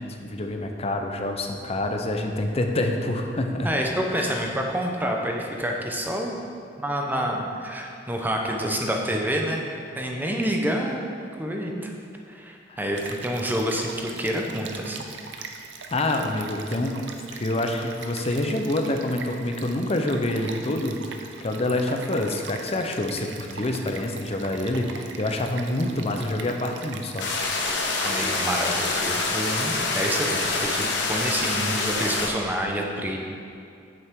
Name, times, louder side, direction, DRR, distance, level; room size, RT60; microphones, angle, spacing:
voice 1, 0.0-3.7 4.2-4.4 12.7-12.9 15.9-17.0 17.3-27.3, left 1 dB, 35° left, 4 dB, 0.7 m, -27 dB
voice 2, 3.6-6.3 6.8-11.0 11.4-11.9 12.3-15.1 28.0-33.2, equal, 10° right, 1 dB, 0.8 m, -28 dB
Stream, 13.0-31.4, right 5 dB, 70° right, 0.6 m, -41 dB
sound 1, 27.2-32.3, left 3 dB, 70° left, 1.1 m, -26 dB
8.5 x 7.7 x 3.7 m, 2.4 s
head